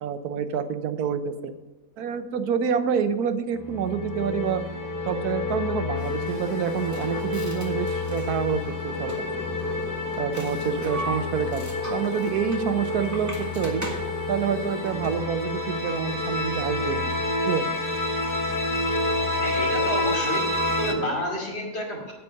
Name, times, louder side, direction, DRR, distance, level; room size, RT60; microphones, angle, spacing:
voice 1, 0.0-1.6 2.0-4.6 5.1-9.3 10.2-13.8 14.3-17.1 17.5-17.8, right 7 dB, 85° right, 11 dB, 1.3 m, -27 dB
sound 1, 3.6-20.9, left 2 dB, 15° left, 0.9 m, -29 dB
sound 2, 5.9-15.4, equal, 10° right, 2.1 m, -37 dB
voice 2, 19.4-20.5 20.8-22.1, left 1 dB, 45° left, -2 dB, 2.9 m, -29 dB
8.8 x 8.3 x 6.5 m, 1.2 s
omnidirectional pair, 1.6 m